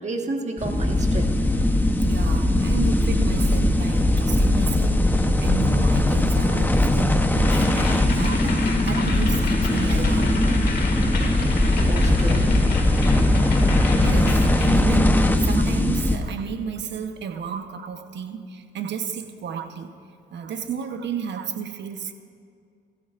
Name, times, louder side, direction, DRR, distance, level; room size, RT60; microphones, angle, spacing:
voice 1, 0.0-1.4 11.8-12.5, right 3 dB, 35° right, 3 dB, 1.5 m, -31 dB
sound 1, 0.6-16.2, left 1 dB, 10° left, 0.9 m, -20 dB
voice 2, 2.0-10.4 14.0-19.9 20.3-22.1, right 7 dB, 65° right, 7 dB, 1.1 m, -32 dB
sound 2, 7.4-14.7, left 3 dB, 55° left, 2.1 m, -32 dB
23.5 x 13.0 x 2.6 m, 2.3 s
cardioid pair, 90°, 20 cm